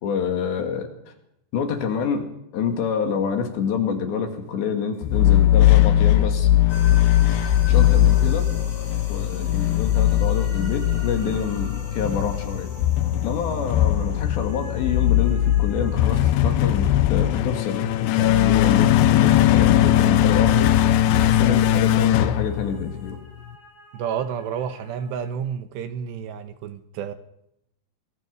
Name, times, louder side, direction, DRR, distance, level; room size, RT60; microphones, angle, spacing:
voice 1, 0.0-0.9 1.5-2.3 2.5-6.5 7.7-8.5 9.1-12.7 13.2-20.7 21.1-23.2, left 6 dB, 65° left, 5 dB, 4.4 m, -27 dB
sound 1, 5.0-23.2, left 12 dB, 85° left, 2.2 m, -19 dB
sound 2, 6.7-25.3, left 2 dB, 40° left, 7.4 m, -44 dB
voice 2, 23.9-27.1, right 8 dB, 75° right, 9 dB, 2.9 m, -30 dB
25.0 x 22.0 x 5.3 m, 0.79 s
omnidirectional pair, 5.6 m